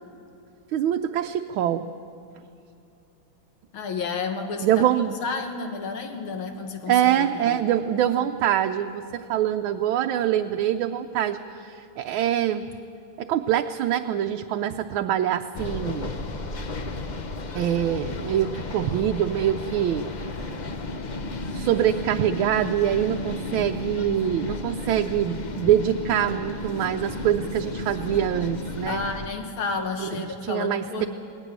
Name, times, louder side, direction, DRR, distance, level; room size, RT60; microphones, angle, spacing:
voice 1, 0.7-1.9 4.6-5.2 6.9-12.7 13.2-16.1 17.5-20.0 21.5-29.0 30.0-30.1 30.4-31.1, right 10 dB, 80° right, 5 dB, 1.4 m, -24 dB
voice 2, 3.7-4.9 5.2-7.6 28.9-31.1, left 4 dB, 90° left, 5 dB, 2.4 m, -31 dB
sound 1, 15.5-29.3, left 2 dB, 55° left, 0.5 m, -33 dB
19.0 x 16.0 x 9.5 m, 2.7 s
omnidirectional pair, 2.2 m